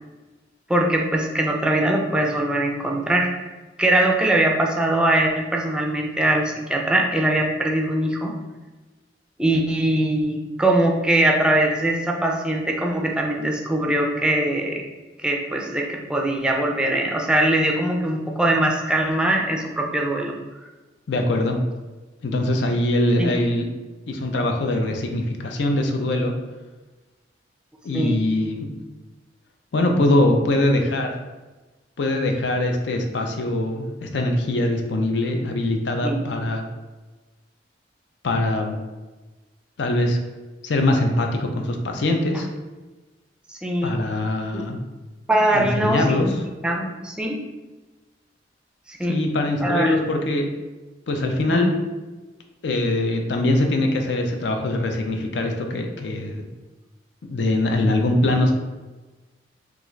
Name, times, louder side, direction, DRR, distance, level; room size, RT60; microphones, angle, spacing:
voice 1, 0.7-3.3 3.8-8.3 9.4-14.8 15.2-20.3 23.2-23.3 27.9-28.2 36.0-36.2 43.6-44.0 44.5-44.6 45.3-46.3 46.6-47.4 48.9-49.2 49.6-49.9 51.5-51.7, right 1 dB, 5° right, 0 dB, 0.4 m, -22 dB
voice 2, 21.1-21.6 22.2-23.7 24.1-26.3 27.8-28.6 29.7-31.1 32.0-36.6 38.2-38.8 39.8-40.2 40.6-42.5 43.8-44.8 45.5-46.3 49.1-50.5 51.1-51.7 52.6-56.4 57.2-58.5, left 1 dB, 75° left, 4 dB, 0.5 m, -22 dB
3.5 x 2.4 x 3.1 m, 1.2 s
head